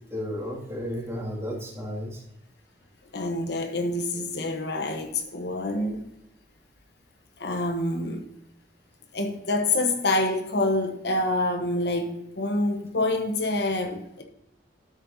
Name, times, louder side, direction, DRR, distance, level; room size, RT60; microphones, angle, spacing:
voice 1, 0.1-2.2, equal, 15° right, 2.4 m, -33 dB
voice 2, 3.1-6.1 7.4-8.3 9.1-14.2, left 2 dB, 65° left, 1.2 m, -27 dB
12.5 x 7.5 x 2.8 m
head